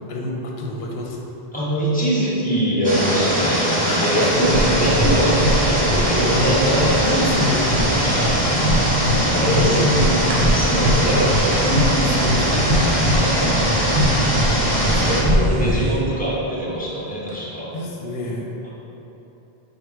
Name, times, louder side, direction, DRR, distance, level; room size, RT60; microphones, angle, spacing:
voice 1, 0.1-1.3 3.8-4.4 5.7-5.8 7.0-7.9 9.6-10.0 11.6-12.7 14.8-16.0 17.7-18.5, left 1 dB, 80° left, -1 dB, 0.9 m, -28 dB
voice 2, 1.5-3.7 4.0-7.3 8.0-8.3 9.3-10.1 10.5-11.7 13.2-13.6 15.0-17.7 18.6-18.7, equal, 10° left, -9 dB, 0.8 m, -23 dB
stream+waterfall, 2.8-15.2, equal, 10° right, 1.1 m, -21 dB
sound 1, 4.3-16.0, equal, 65° right, 0.8 m, -22 dB
sound 2, 10.2-13.2 13.6-15.7 16.6-17.4, right 1 dB, 85° right, 1.0 m, -38 dB
4.9 x 2.1 x 4.4 m, 3.0 s
omnidirectional pair, 1.0 m